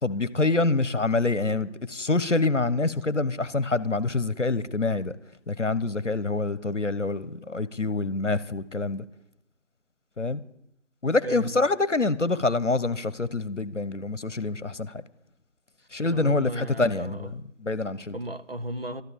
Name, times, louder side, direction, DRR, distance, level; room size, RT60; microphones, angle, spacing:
voice 1, 0.0-5.2 5.5-9.0 10.2-10.4 11.0-15.0 15.9-18.2, left 3 dB, 70° left, 1.1 m, -26 dB
voice 2, 16.1-17.3 18.1-19.0, right 1 dB, 50° right, 0.9 m, -34 dB
13.0 x 11.0 x 7.4 m
figure-of-eight pair, 170°, 38 cm